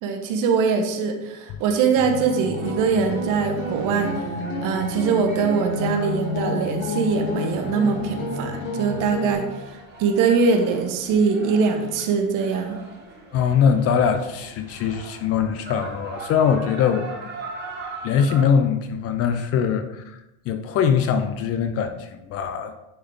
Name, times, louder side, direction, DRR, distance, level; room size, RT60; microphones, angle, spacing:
voice 1, 0.0-12.8, right 5 dB, 50° right, 5 dB, 1.1 m, -22 dB
sound 1, 2.0-9.3, left 2 dB, 70° left, 2.5 m, -30 dB
sound 2, 2.5-18.4, right 3 dB, 25° right, 1.7 m, -41 dB
voice 2, 13.3-17.1 17.6-17.7 18.0-20.2 20.5-22.7, left 7 dB, 35° left, 8 dB, 0.5 m, -22 dB
10.0 x 3.8 x 3.5 m, 0.94 s
supercardioid pair, 130°, 41 cm